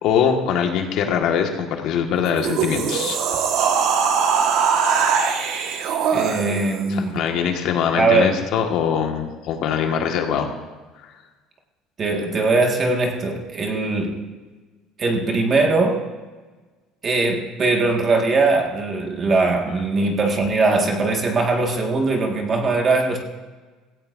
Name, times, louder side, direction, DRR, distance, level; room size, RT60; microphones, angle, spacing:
voice 1, 0.0-3.2 6.9-10.5, left 7 dB, 60° left, 3 dB, 1.6 m, -22 dB
sound 1, 2.3-6.9, right 6 dB, 60° right, 1.4 m, -21 dB
voice 2, 6.1-7.1 8.0-8.4 12.0-14.2 15.0-16.0 17.0-23.2, right 3 dB, 30° right, 2 dB, 1.7 m, -20 dB
16.5 x 16.0 x 2.6 m, 1.3 s
cardioid pair, 150°, 0 cm